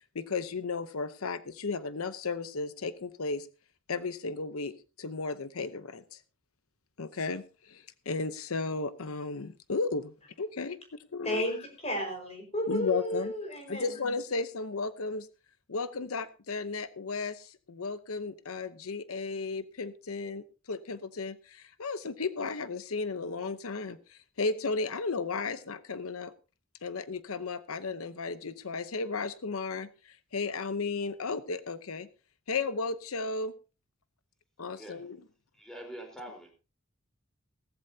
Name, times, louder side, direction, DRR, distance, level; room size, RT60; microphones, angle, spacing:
voice 1, 0.0-3.5 3.9-4.7 5.0-6.2 7.0-10.8 11.1-11.4 12.7-13.3 13.7-15.3 15.7-26.3 26.8-32.1 32.5-33.5 34.6-35.2, left 4 dB, 90° left, 0.8 m, -34 dB
voice 2, 11.2-13.9, equal, 30° left, 4.9 m, -33 dB
voice 3, 34.7-35.0 35.6-36.5, right 1 dB, 5° left, 4.0 m, -44 dB
17.0 x 14.5 x 2.8 m
head